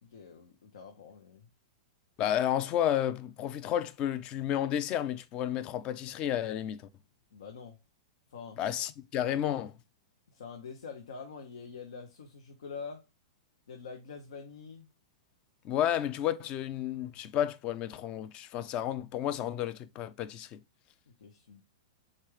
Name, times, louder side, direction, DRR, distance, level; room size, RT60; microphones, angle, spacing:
voice 1, 0.0-1.5 7.3-7.8 8.3-8.6 10.3-13.1 13.7-14.9 21.1-21.6, left 5 dB, 80° left, 0.7 m, -45 dB
voice 2, 2.2-6.8 8.6-9.7 15.6-20.6, left 11 dB, 35° left, 0.4 m, -31 dB
3.8 x 3.3 x 3.1 m
hypercardioid pair, 130°, 3 cm